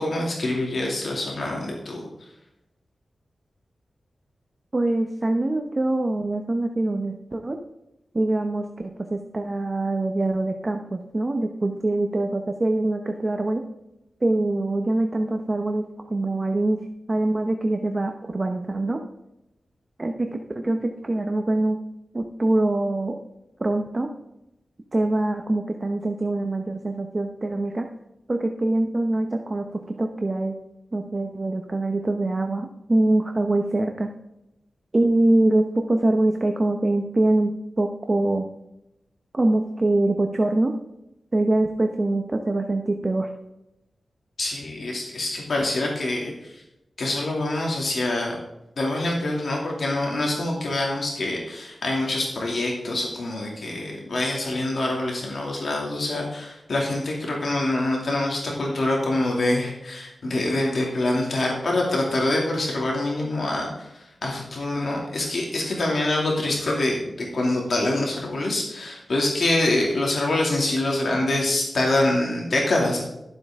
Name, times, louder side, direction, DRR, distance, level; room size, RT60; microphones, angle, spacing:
voice 1, 0.0-2.0 44.4-46.3 47.0-48.4 48.8-63.9 64.2-73.0, left 2 dB, 65° left, -1 dB, 2.6 m, -25 dB
voice 2, 4.7-7.6 8.1-13.6 14.2-16.8 17.1-19.0 20.0-21.8 22.1-23.2 23.6-24.1 24.9-27.9 28.3-30.5 30.9-34.1 34.9-38.4 39.3-40.7 41.3-43.3, right 2 dB, 30° right, 4 dB, 0.9 m, -24 dB
12.0 x 7.7 x 3.7 m, 0.88 s
wide cardioid pair, 95°, 0 cm